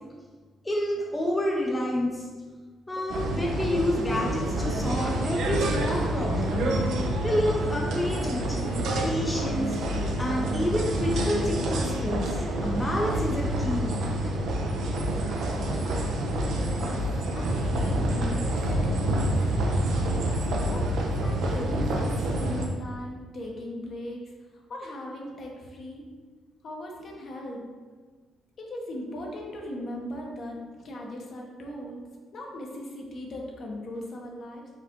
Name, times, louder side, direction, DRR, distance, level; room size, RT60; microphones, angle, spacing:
voice 1, 0.6-2.3 2.9-6.8 7.2-9.8 10.2-14.1, left 1 dB, 15° left, -1 dB, 0.6 m, -29 dB
sound 1, 3.1-22.7, right 1 dB, 75° right, 0.6 m, -27 dB
voice 2, 16.4-17.0 17.3-19.4 20.4-26.1 26.6-27.7 28.6-32.0 32.3-34.7, left 1 dB, 55° left, -1 dB, 1.0 m, -39 dB
4.8 x 2.4 x 4.4 m, 1.5 s
cardioid pair, 90°, 0 cm